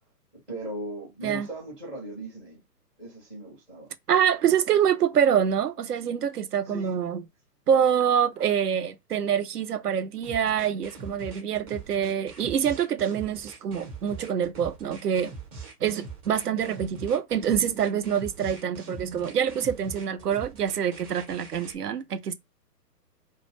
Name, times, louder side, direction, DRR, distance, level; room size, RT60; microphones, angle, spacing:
voice 1, 0.5-2.6 3.0-3.9 6.6-7.0, right 1 dB, 5° right, 0.5 m, -38 dB
voice 2, 4.1-7.2 7.7-15.3 15.8-22.3, right 8 dB, 70° right, 0.6 m, -25 dB
sound 1, 10.2-21.8, right 4 dB, 20° right, 0.8 m, -42 dB
2.3 x 2.1 x 3.2 m
figure-of-eight pair, 130°, 49 cm